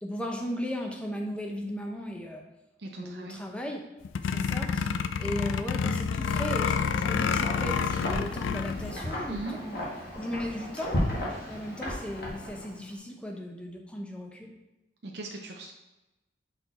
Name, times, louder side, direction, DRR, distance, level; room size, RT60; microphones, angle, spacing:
voice 1, 0.0-2.4 3.0-3.8 4.2-9.9 10.1-10.9 11.5-14.5, equal, 5° left, 1 dB, 0.6 m, -36 dB
voice 2, 2.8-3.4 9.3-9.6 15.0-15.7, right 2 dB, 60° right, 1 dB, 0.6 m, -39 dB
sound 1, 4.0-8.9, left 6 dB, 85° left, 0.3 m, -28 dB
Wind, 6.4-12.9, left 1 dB, 50° left, 1.7 m, -35 dB
5.6 x 4.4 x 4.1 m, 1.0 s
head